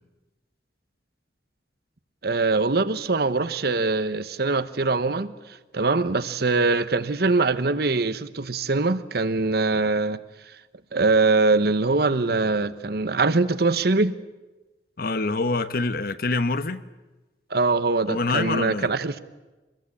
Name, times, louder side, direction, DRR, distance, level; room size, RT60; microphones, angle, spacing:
voice 1, 2.2-5.3 5.7-10.2 10.9-14.2 17.5-19.2, right 3 dB, 60° right, 1.0 m, -22 dB
voice 2, 15.0-16.8 18.1-18.9, left 3 dB, 55° left, 1.2 m, -25 dB
25.5 x 20.5 x 8.6 m
head